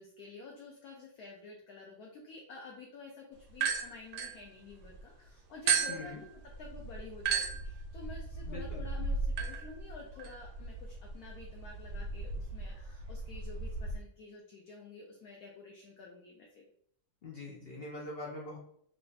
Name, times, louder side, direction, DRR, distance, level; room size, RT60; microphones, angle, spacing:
voice 1, 0.0-6.1 6.6-16.6, left 4 dB, 65° left, -1 dB, 1.0 m, -50 dB
sound 1, 3.5-5.0 5.7-14.0, right 5 dB, 70° right, 1.1 m, -36 dB
voice 2, 5.9-6.2 8.5-8.6 17.2-18.6, left 2 dB, 90° left, -4 dB, 0.5 m, -43 dB
3.3 x 2.4 x 3.9 m, 0.66 s
omnidirectional pair, 2.1 m